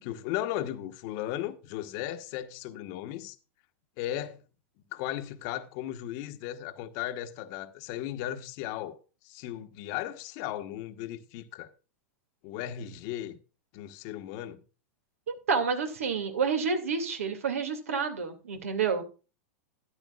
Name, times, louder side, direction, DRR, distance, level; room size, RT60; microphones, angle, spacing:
voice 1, 0.0-3.4 4.0-4.4 4.9-9.0 9.2-11.7 12.4-13.4 13.7-14.6, left 12 dB, 50° left, 1.1 m, -36 dB
voice 2, 15.3-19.0, right 5 dB, 80° right, 2.4 m, -29 dB
13.0 x 10.0 x 2.4 m
hypercardioid pair, 100°, 8 cm